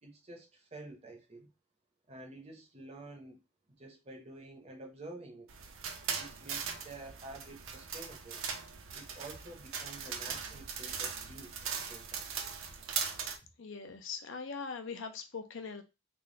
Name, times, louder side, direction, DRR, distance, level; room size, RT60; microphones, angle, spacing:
voice 1, 0.0-1.5 2.1-3.4 3.7-5.5 6.1-8.4 8.9-12.3, right 2 dB, 30° right, 0.7 m, -49 dB
sound 1, 5.5-13.4, right 6 dB, 65° right, 0.6 m, -39 dB
voice 2, 13.6-15.8, left 5 dB, 60° left, 0.5 m, -41 dB
3.5 x 2.1 x 3.8 m
head